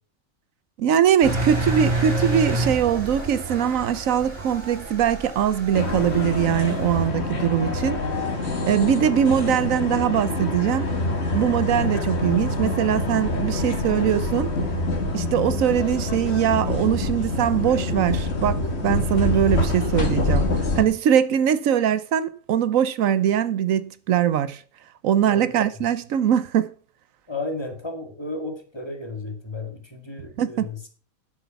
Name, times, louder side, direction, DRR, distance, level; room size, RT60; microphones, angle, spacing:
voice 1, 0.8-8.0 8.6-10.9 11.3-14.5 15.1-24.6 25.0-26.7 30.4-30.7, right 9 dB, 85° right, 1.2 m, -22 dB
Engine, 1.2-7.1, right 2 dB, 45° right, 3.3 m, -28 dB
sound 1, 5.7-20.8, left 2 dB, 55° left, 2.0 m, -26 dB
voice 2, 25.3-25.9 27.3-30.9, left 2 dB, 20° left, 2.1 m, -34 dB
10.5 x 8.1 x 5.8 m
omnidirectional pair, 1.4 m